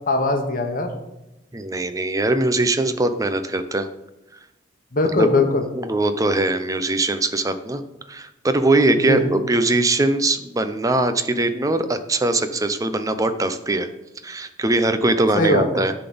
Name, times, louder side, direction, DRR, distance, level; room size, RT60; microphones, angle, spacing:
voice 1, 0.1-0.9 4.9-5.6 9.0-9.3 15.4-15.9, left 2 dB, 50° left, 4 dB, 1.1 m, -20 dB
voice 2, 1.5-3.9 5.2-5.3 5.7-7.8 8.1-13.9 14.2-15.9, right 2 dB, 20° right, 9 dB, 0.6 m, -21 dB
10.5 x 3.9 x 6.9 m, 0.95 s
head